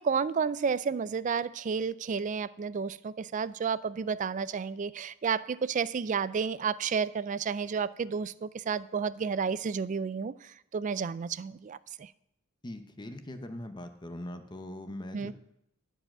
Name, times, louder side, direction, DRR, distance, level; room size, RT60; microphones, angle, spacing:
voice 1, 0.0-12.1 15.1-15.3, right 6 dB, 35° right, 0.3 m, -31 dB
voice 2, 12.6-15.3, left 1 dB, 20° left, 0.8 m, -41 dB
11.0 x 4.9 x 7.6 m
head